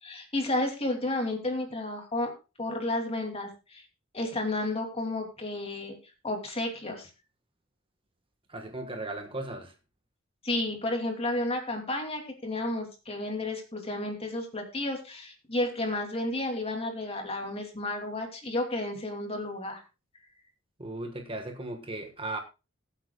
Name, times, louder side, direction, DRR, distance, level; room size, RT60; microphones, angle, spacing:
voice 1, 0.0-2.3 2.6-3.8 4.1-6.0 6.2-7.1 10.4-19.8, left 2 dB, 30° left, 3 dB, 2.7 m, -32 dB
voice 2, 8.5-9.7 20.8-22.4, right 2 dB, 25° right, 5 dB, 1.3 m, -36 dB
21.0 x 8.2 x 2.3 m, 0.29 s
head